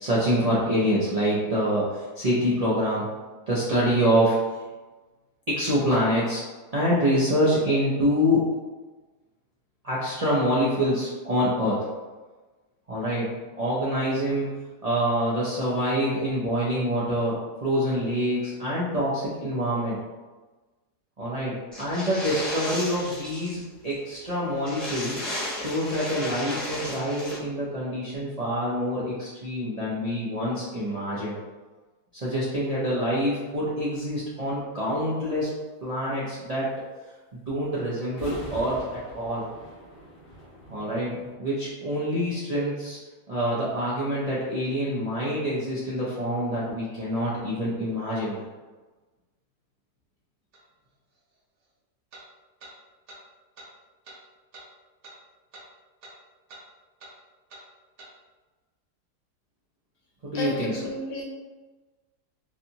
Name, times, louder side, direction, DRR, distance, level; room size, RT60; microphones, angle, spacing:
voice 1, 0.0-3.1 3.5-4.4 5.5-6.4 6.7-8.5 9.8-11.8 12.9-13.3 13.6-14.5 14.8-20.0 21.2-25.2 25.5-31.3 32.1-35.5 35.8-36.7 37.3-38.9 39.1-39.4 40.7-43.0 43.3-48.5 60.2-60.7, equal, 75° right, -9 dB, 0.3 m, -26 dB
sound 1, 21.7-23.6 23.9-24.0 24.3-24.4 24.6-27.4, left 1 dB, ahead, 0.5 m, -34 dB
sound 2, 38.1-41.3, right 1 dB, 45° left, 0.8 m, -42 dB
sound 3, 50.5-50.6 52.1-52.3 52.6-52.7 53.1-53.2 53.6-53.7 54.0-54.2 54.5-54.7 55.0-55.2 55.5-55.7 56.0-56.2 56.5-56.6 57.0-57.1 57.5-57.6 58.0-58.1, right 2 dB, 55° right, 0.9 m, -46 dB
voice 2, 60.3-61.2, left 2 dB, 70° left, -3 dB, 1.2 m, -31 dB
3.3 x 2.6 x 2.8 m, 1.2 s
omnidirectional pair, 1.7 m